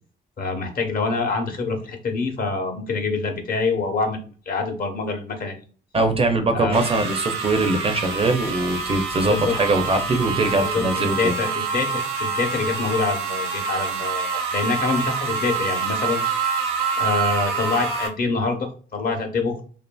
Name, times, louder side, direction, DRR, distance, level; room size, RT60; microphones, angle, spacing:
voice 1, 0.4-5.6 6.5-6.8 9.2-9.5 10.6-16.2 17.0-19.6, left 4 dB, 45° left, 4 dB, 0.8 m, -26 dB
voice 2, 5.9-11.4, right 2 dB, 30° right, 6 dB, 0.4 m, -22 dB
sound 1, 6.7-18.1, right 5 dB, 80° right, 0.7 m, -26 dB
2.7 x 2.5 x 2.2 m, 0.40 s
cardioid pair, 90°, 20 cm